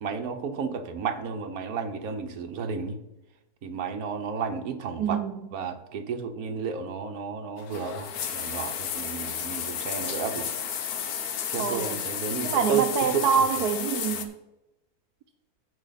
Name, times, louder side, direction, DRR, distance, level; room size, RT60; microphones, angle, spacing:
voice 1, 0.0-3.0 3.6-5.2 5.5-10.5 11.5-12.9 13.1-13.2, right 6 dB, 70° right, 7 dB, 1.4 m, -32 dB
voice 2, 5.0-5.5 11.6-12.0 12.4-14.3, right 7 dB, 85° right, 6 dB, 1.2 m, -26 dB
sound 1, 7.6-14.3, left 8 dB, 80° left, 1.4 m, -32 dB
14.5 x 4.9 x 4.0 m, 0.93 s
omnidirectional pair, 1.6 m